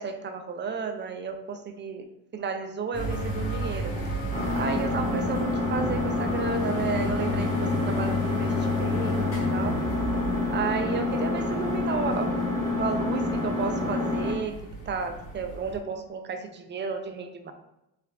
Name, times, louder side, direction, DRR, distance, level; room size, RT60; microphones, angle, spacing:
voice 1, 0.0-2.1 2.3-4.0 4.5-9.8 10.5-12.4 12.7-14.6 14.9-17.5, right 5 dB, 25° right, 6 dB, 0.5 m, -32 dB
sound 1, 2.9-15.8, left 1 dB, 75° left, 1.5 m, -34 dB
Engine, 4.3-14.3, left 2 dB, 15° left, 1.5 m, -28 dB
3.5 x 3.2 x 2.4 m, 0.87 s
supercardioid pair, 65°, 41 cm